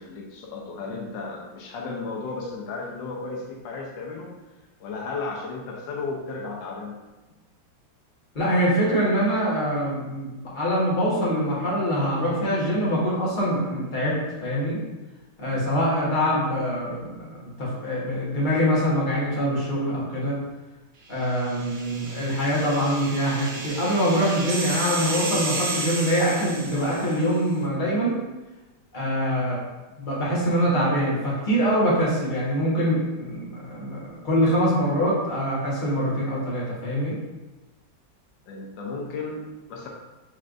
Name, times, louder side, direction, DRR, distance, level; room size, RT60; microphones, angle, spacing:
voice 1, 0.0-4.4 4.8-7.0 15.5-15.7 38.5-39.9, left 3 dB, 85° left, 0 dB, 1.4 m, -34 dB
voice 2, 8.3-14.8 15.4-20.4 21.1-28.1 28.9-29.6 30.0-34.0 34.2-37.1, equal, 30° left, -7 dB, 1.4 m, -24 dB
sound 1, 21.4-27.3, right 3 dB, 75° right, 1.4 m, -33 dB
6.3 x 3.2 x 2.5 m, 1.1 s
omnidirectional pair, 2.0 m